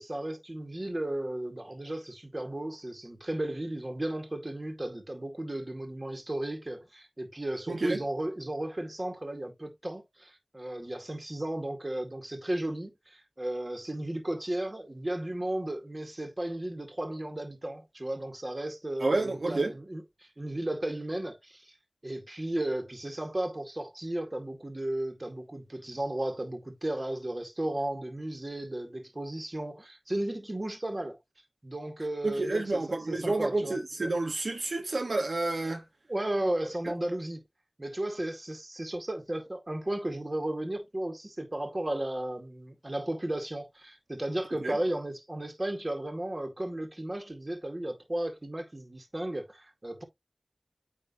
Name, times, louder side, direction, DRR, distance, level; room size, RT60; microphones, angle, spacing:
voice 1, 0.0-21.7 22.0-31.2 31.6-33.8 36.1-37.4 37.8-50.0, right 1 dB, 35° right, 2.0 m, -34 dB
voice 2, 7.7-8.0 19.0-19.7 32.2-35.8 44.6-44.8, right 2 dB, 85° right, 1.5 m, -29 dB
9.4 x 3.4 x 3.0 m
wide cardioid pair, 55°, 0 cm